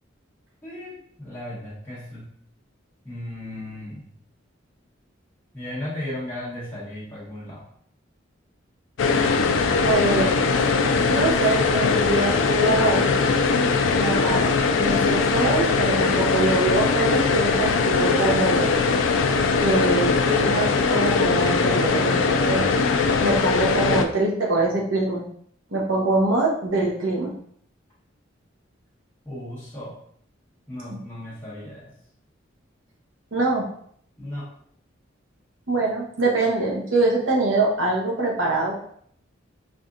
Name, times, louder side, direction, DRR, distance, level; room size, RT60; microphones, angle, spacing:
voice 1, 0.6-2.3 3.0-4.1 5.5-7.6 29.2-30.0 30.7-31.9 34.2-34.5, left 1 dB, 10° left, -10 dB, 1.2 m, -35 dB
sound 1, 9.0-24.1, left 4 dB, 75° left, 0.4 m, -21 dB
voice 2, 9.8-10.5 11.1-13.1 13.9-18.7 19.6-22.7 23.2-25.3 25.7-27.3 33.3-33.7 35.7-38.8, right 2 dB, 85° right, -2 dB, 1.0 m, -24 dB
4.8 x 2.6 x 2.5 m, 0.64 s
head